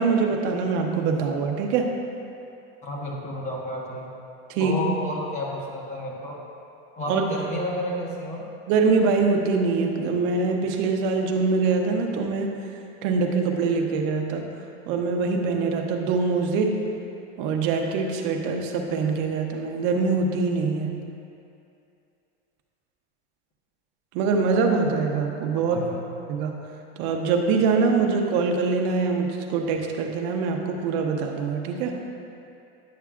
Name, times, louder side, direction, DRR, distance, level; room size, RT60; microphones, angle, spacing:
voice 1, 0.0-1.9 4.5-4.8 7.1-7.2 8.7-12.6 13.0-14.5 14.9-16.8 17.4-20.9 24.1-25.8 26.3-26.6 27.0-32.0, right 4 dB, 55° right, 3 dB, 0.8 m, -24 dB
voice 2, 2.8-4.1 4.6-6.4 7.0-8.5 25.7-26.1, left 1 dB, 25° left, -3 dB, 1.2 m, -31 dB
9.5 x 6.8 x 2.5 m, 2.6 s
supercardioid pair, 140°, 30 cm